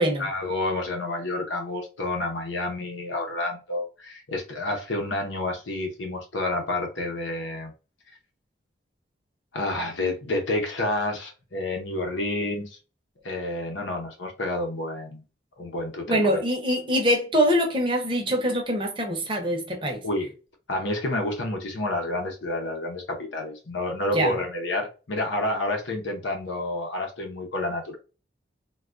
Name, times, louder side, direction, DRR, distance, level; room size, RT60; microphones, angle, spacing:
voice 1, 0.2-7.7 9.5-12.8 13.2-15.2 15.6-16.4 20.0-20.3 20.7-28.0, left 2 dB, 90° left, 0.8 m, -29 dB
voice 2, 16.1-20.0 24.1-24.3, equal, 25° right, 0.7 m, -24 dB
3.3 x 2.3 x 2.4 m
head